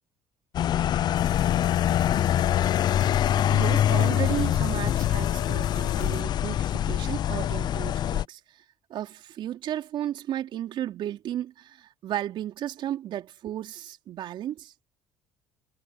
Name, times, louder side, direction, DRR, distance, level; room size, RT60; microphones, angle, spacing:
sound 1, 0.5-8.2, left 11 dB, 50° left, 0.5 m, -24 dB
sound 2, 1.1-6.2, left 19 dB, 90° left, 1.0 m, -38 dB
voice 1, 3.5-8.6 8.9-14.7, right 11 dB, 60° right, 3.7 m, -34 dB
supercardioid pair, 70°, 9 cm